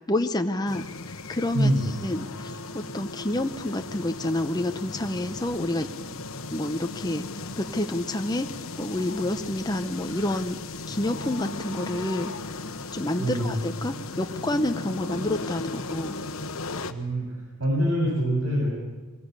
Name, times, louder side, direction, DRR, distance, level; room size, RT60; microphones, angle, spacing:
voice 1, 0.0-1.7 2.0-5.9 6.5-8.5 8.8-10.6 10.9-12.3 12.9-16.2, left 1 dB, 20° left, 6 dB, 0.8 m, -29 dB
sound 1, 0.7-16.9, left 3 dB, 75° left, 1.2 m, -36 dB
voice 2, 1.5-1.9 13.2-13.5 16.9-18.7, right 1 dB, 85° right, -4 dB, 7.7 m, -25 dB
23.0 x 19.0 x 8.3 m, 1.2 s
head